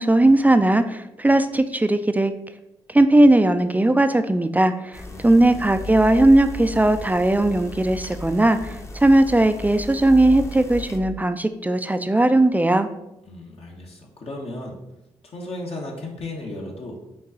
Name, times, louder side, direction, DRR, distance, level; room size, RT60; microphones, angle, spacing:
voice 1, 0.0-2.3 2.9-12.9, right 1 dB, 15° right, 10 dB, 0.4 m, -18 dB
sound 1, 4.9-11.0, left 1 dB, 25° left, 0.7 m, -35 dB
voice 2, 5.1-5.7 13.3-14.8 15.2-17.0, left 2 dB, 50° left, -1 dB, 0.9 m, -35 dB
5.3 x 2.3 x 3.8 m, 0.91 s
hypercardioid pair, 45°, 13 cm